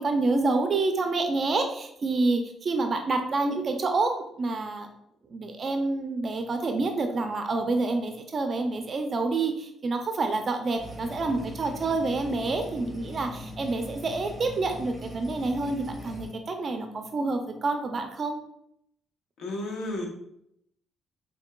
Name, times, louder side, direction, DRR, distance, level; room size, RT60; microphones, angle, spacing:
voice 1, 0.0-4.9 5.3-18.4, right 3 dB, 45° right, 5 dB, 0.4 m, -28 dB
sound 1, 10.8-16.3, left 1 dB, 5° left, 1.4 m, -41 dB
voice 2, 19.4-20.1, left 1 dB, 80° left, 0 dB, 0.8 m, -32 dB
4.6 x 2.6 x 2.2 m, 0.77 s
cardioid pair, 90°, 0 cm